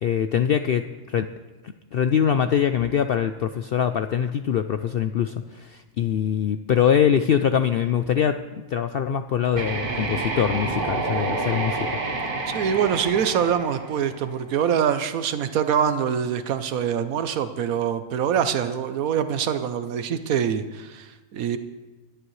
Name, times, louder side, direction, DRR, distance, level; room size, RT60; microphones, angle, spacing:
voice 1, 0.0-1.3 1.6-8.4 8.7-11.9, left 8 dB, 65° left, 9 dB, 0.5 m, -23 dB
sound 1, 9.5-14.5, right 3 dB, 40° right, 1.2 m, -29 dB
voice 2, 12.5-21.6, right 8 dB, 85° right, 10 dB, 1.2 m, -24 dB
21.5 x 11.5 x 3.2 m, 1.2 s
omnidirectional pair, 1.4 m